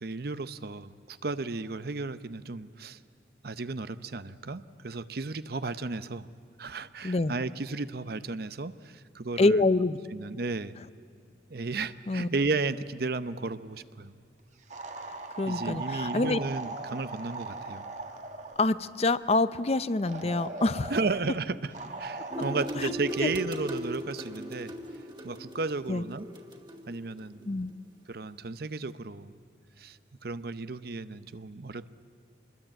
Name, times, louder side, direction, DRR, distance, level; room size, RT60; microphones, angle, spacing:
voice 1, 0.0-3.0 3.4-6.3 6.6-9.7 10.1-10.7 11.5-14.1 15.4-17.9 20.2-20.3 20.9-21.7 22.0-24.7 25.2-26.3 26.9-27.5 28.1-29.3 29.8-30.0 30.2-31.9, right 3 dB, 60° right, 13 dB, 0.8 m, -34 dB
voice 2, 7.0-7.3 9.4-10.0 12.1-12.3 15.4-16.4 18.6-20.9 22.8-22.9 23.2-23.3 25.9-26.0 27.4-27.7, left 2 dB, 35° left, 14 dB, 0.6 m, -26 dB
sound 1, 14.7-18.7 20.1-21.2 21.7-22.7, right 3 dB, 45° right, 1.7 m, -39 dB
sound 2, 22.3-27.3, equal, 25° right, 2.4 m, -38 dB
26.0 x 21.0 x 8.9 m, 2.3 s
head